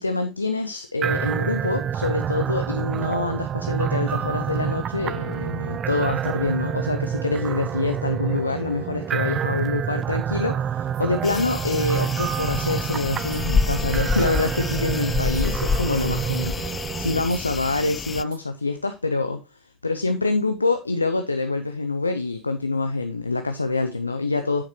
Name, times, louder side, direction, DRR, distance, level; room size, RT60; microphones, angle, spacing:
voice 1, 0.0-24.6, left 3 dB, 90° left, 0.5 m, -26 dB
sound 1, 1.0-17.2, right 9 dB, 40° right, 0.4 m, -28 dB
sound 2, 10.9-11.4 11.7-13.4 13.7-14.0 14.3-14.4 14.7-15.4 15.7-16.0 16.3-16.4 16.8-17.4 17.7-17.8 18.3-18.4, right 9 dB, 70° right, 0.9 m, -44 dB
sound 3, 11.2-18.2, left 5 dB, 30° left, 0.4 m, -28 dB
8.7 x 7.2 x 3.0 m
figure-of-eight pair, 65°, 0 cm